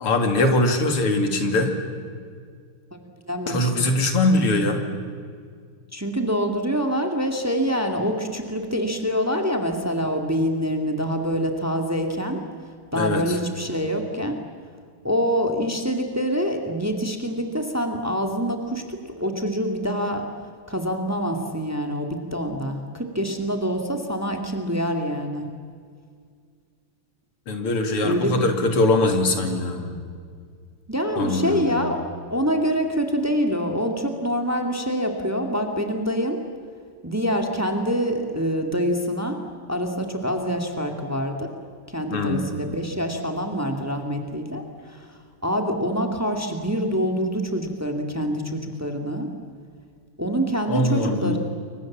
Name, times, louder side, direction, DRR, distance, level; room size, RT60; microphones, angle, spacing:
voice 1, 0.0-1.8 3.5-4.9 12.9-13.4 27.5-30.0 31.2-31.9 42.1-42.4 50.7-51.4, left 2 dB, 85° left, 5 dB, 3.4 m, -22 dB
voice 2, 3.3-3.9 5.9-12.4 12.9-14.3 15.0-20.2 20.7-25.5 28.0-28.5 30.9-32.0 32.3-36.4 37.0-39.4 39.7-41.5 41.9-45.1 45.4-49.3 50.2-51.4, equal, 5° right, 4 dB, 2.2 m, -25 dB
29.0 x 24.0 x 7.5 m, 2.1 s
omnidirectional pair, 2.4 m